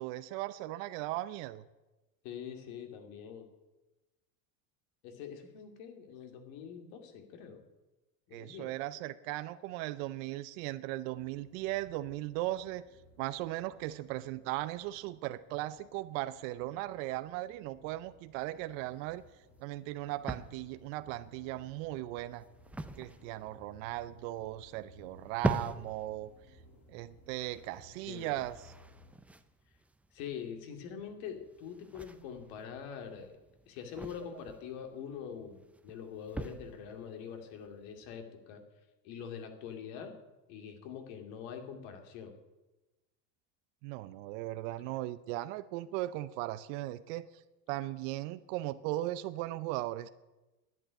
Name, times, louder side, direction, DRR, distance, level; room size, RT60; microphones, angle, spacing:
voice 1, 0.0-1.6 8.3-12.8 13.2-19.2 19.6-22.4 23.0-26.3 26.9-28.7 43.8-47.4 47.7-50.1, right 16 dB, 60° right, 13 dB, 0.7 m, -38 dB
voice 2, 2.2-3.4 5.0-7.6 8.3-8.7 28.1-28.4 30.1-33.3 33.7-38.6 39.0-40.1 40.5-42.3, left 7 dB, 65° left, 5 dB, 2.6 m, -44 dB
sound 1, 11.2-29.1, left 1 dB, 35° left, 3.8 m, -61 dB
sound 2, 18.4-38.2, right 2 dB, 5° right, 0.5 m, -44 dB
10.5 x 8.7 x 10.0 m, 1.1 s
supercardioid pair, 130°, 43 cm